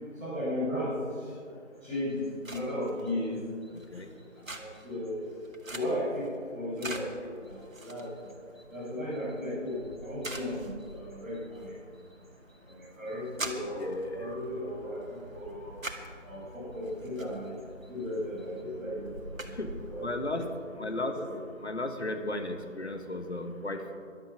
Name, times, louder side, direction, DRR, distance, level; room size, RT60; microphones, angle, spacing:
voice 1, 0.2-0.9 1.8-3.4 4.5-5.2 5.7-6.3 6.5-8.1 8.7-11.7 13.0-15.7 16.2-17.6 17.9-19.1 19.4-19.6 19.9-20.4 20.7-21.4, left 1 dB, 5° right, -21 dB, 4.1 m, -35 dB
sound 1, 1.8-20.5, right 2 dB, 85° right, 2.2 m, -46 dB
voice 2, 13.8-14.3 19.6-19.7 20.0-20.5 20.8-21.2 21.6-24.0, left 2 dB, 55° left, 6 dB, 1.4 m, -34 dB
14.5 x 12.0 x 6.2 m, 2.2 s
figure-of-eight pair, 175°, 39 cm